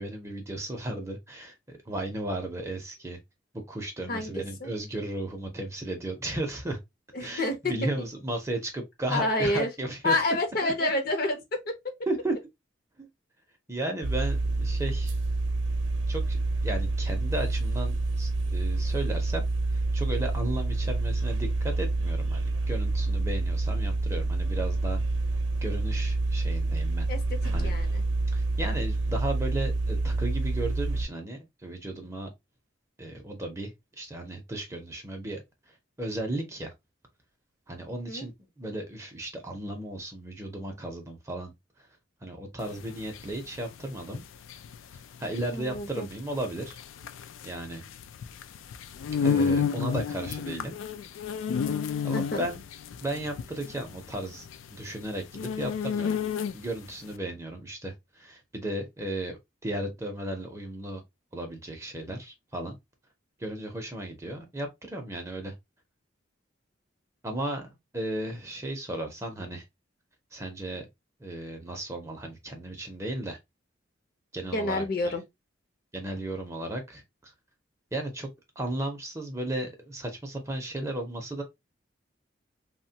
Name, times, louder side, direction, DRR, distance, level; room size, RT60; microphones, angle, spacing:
voice 1, 0.0-3.2 3.5-6.8 7.2-10.1 10.6-10.9 12.1-12.4 13.0-13.1 13.7-15.1 16.1-19.4 19.7-25.0 25.6-27.1 27.5-27.7 28.3-32.3 33.0-35.4 36.0-36.7 37.7-38.3 38.6-41.5 42.2-44.2 45.2-46.8 47.4-47.8 49.2-50.8 52.0-52.6 53.0-56.2 56.5-61.0 61.3-62.8 63.4-65.5 67.2-69.6 70.3-70.8 71.2-73.4 74.3-75.1 75.9-77.3 77.9-78.3 78.6-81.4, right 1 dB, 15° right, 0.5 m, -35 dB
voice 2, 4.1-4.7 7.1-7.7 9.1-9.7 10.0-11.9 27.1-28.0 38.1-38.3 45.5-46.1 52.1-52.4 74.5-75.2, left 2 dB, 50° left, 0.7 m, -29 dB
sound 1, 14.0-31.1, right 2 dB, 70° right, 0.6 m, -28 dB
sound 2, 42.7-56.9, left 6 dB, 85° left, 0.3 m, -31 dB
3.0 x 2.1 x 2.7 m
head